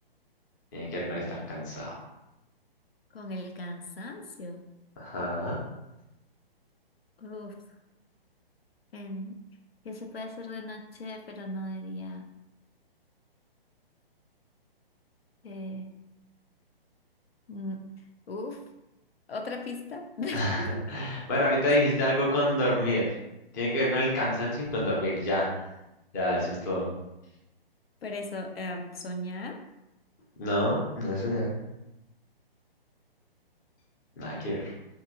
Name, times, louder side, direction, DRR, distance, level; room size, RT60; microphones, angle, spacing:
voice 1, 0.7-1.9 5.0-5.6 20.3-23.0 23.5-25.5 26.1-26.9 30.4-31.5 34.2-34.7, left 1 dB, 20° left, -4 dB, 0.5 m, -28 dB
voice 2, 3.1-4.7 7.2-7.6 8.9-9.4 9.8-12.3 15.4-16.0 17.5-17.8 18.3-18.6 19.3-20.8 21.7-21.8 28.0-29.6, left 1 dB, 75° left, 4 dB, 0.5 m, -37 dB
2.7 x 2.7 x 2.5 m, 0.92 s
figure-of-eight pair, 130°, 30 cm